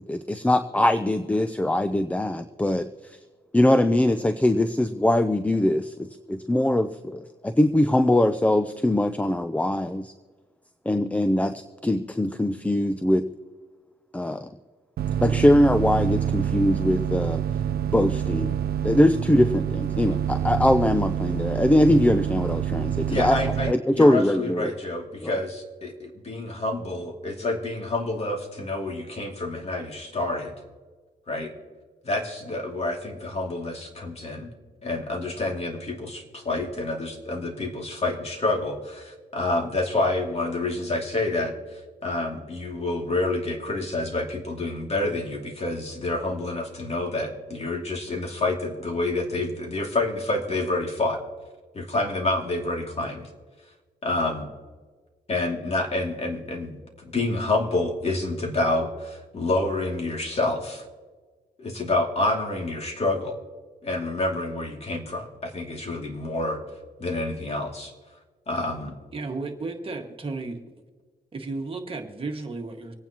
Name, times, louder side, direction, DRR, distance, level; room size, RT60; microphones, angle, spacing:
voice 1, 0.1-3.2 3.5-10.1 10.9-13.2 14.1-14.5 15.2-17.4 17.9-18.6 18.8-23.4 23.7-24.8 25.2-25.3, left 1 dB, 10° left, 10 dB, 0.5 m, -22 dB
sound 1, 15.0-23.7, right 9 dB, 70° right, 0.4 m, -27 dB
voice 2, 23.1-30.5 31.3-31.5 32.0-34.5 34.8-41.5 42.0-51.2 51.7-53.3 54.0-54.5 55.3-56.8 57.1-60.9 61.6-63.3 63.8-66.6 67.0-67.9 68.5-68.9, left 2 dB, 40° left, 1 dB, 2.6 m, -28 dB
voice 3, 69.1-70.6 71.3-72.9, right 3 dB, 35° right, 2 dB, 1.8 m, -33 dB
26.0 x 9.3 x 3.0 m, 1.4 s
cardioid pair, 100°, 17 cm